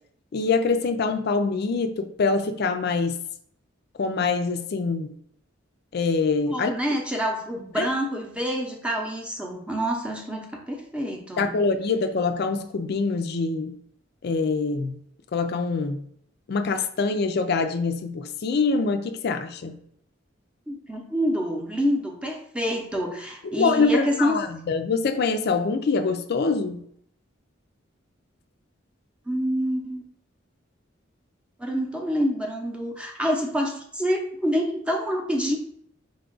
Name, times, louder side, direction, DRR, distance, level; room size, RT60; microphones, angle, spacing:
voice 1, 0.3-3.2 4.0-5.1 5.9-6.7 7.8-7.9 11.4-13.8 14.2-15.0 15.3-16.0 16.5-19.8 23.6-26.8, left 4 dB, 55° left, 7 dB, 0.4 m, -24 dB
voice 2, 6.5-11.5 20.7-24.4 29.3-30.0 31.6-35.6, equal, 5° right, 0 dB, 0.7 m, -27 dB
5.1 x 2.3 x 3.8 m, 0.67 s
head